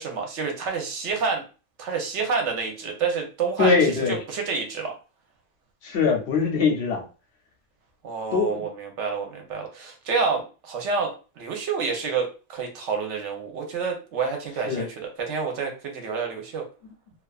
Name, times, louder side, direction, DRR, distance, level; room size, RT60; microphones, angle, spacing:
voice 1, 0.0-1.4 1.8-4.9 8.0-16.7, right 5 dB, 80° right, 3 dB, 1.0 m, -28 dB
voice 2, 3.6-4.2 5.8-7.0 8.3-8.6 14.7-14.9, left 5 dB, 70° left, 3 dB, 0.8 m, -22 dB
2.4 x 2.3 x 2.3 m, 0.34 s
omnidirectional pair, 1.2 m